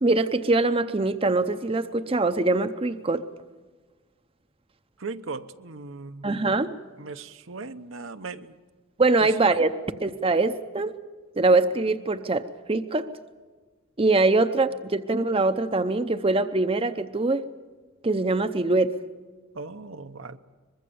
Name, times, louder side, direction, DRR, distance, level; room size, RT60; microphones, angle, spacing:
voice 1, 0.0-3.2 6.2-6.7 9.0-9.7 10.0-10.9 11.4-13.1 14.0-17.4 18.0-18.9, right 3 dB, 25° right, 10 dB, 0.7 m, -23 dB
voice 2, 5.0-6.6 7.0-8.5 19.5-20.4, right 3 dB, 75° right, 9 dB, 0.9 m, -38 dB
23.5 x 21.5 x 7.0 m, 1.4 s
head